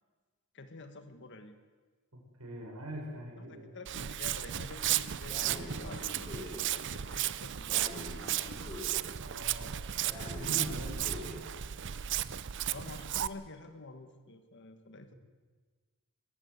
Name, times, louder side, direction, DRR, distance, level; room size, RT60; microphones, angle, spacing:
voice 1, 0.5-1.6 3.4-7.9 8.3-8.6 9.9-10.0 12.7-15.1, left 2 dB, 55° left, 8 dB, 1.5 m, -49 dB
voice 2, 2.4-3.8 9.2-11.5, right 1 dB, 90° right, 0 dB, 6.1 m, -43 dB
Walk footsteps, 3.9-13.3, right 11 dB, 55° right, 0.6 m, -34 dB
Breathing, 5.3-6.6 7.7-9.0 10.1-11.4, left 2 dB, 20° left, 7.9 m, -44 dB
21.5 x 15.0 x 8.1 m, 1.4 s
head